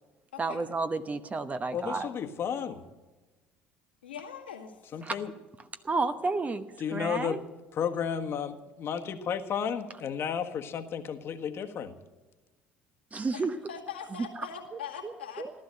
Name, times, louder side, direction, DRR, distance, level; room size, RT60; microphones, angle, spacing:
voice 1, 0.4-2.1 5.0-5.2 5.8-7.4 13.1-13.6 14.2-14.4 15.0-15.5, right 3 dB, 25° right, 9 dB, 1.0 m, -31 dB
voice 2, 1.7-2.8 4.9-5.3 6.8-7.4 7.7-11.9, left 7 dB, 50° left, 6 dB, 1.5 m, -33 dB
voice 3, 4.0-4.8 13.3-15.5, left 7 dB, 85° left, 0 dB, 2.2 m, -41 dB
15.5 x 12.5 x 6.5 m, 1.1 s
hypercardioid pair, 65°, 5 cm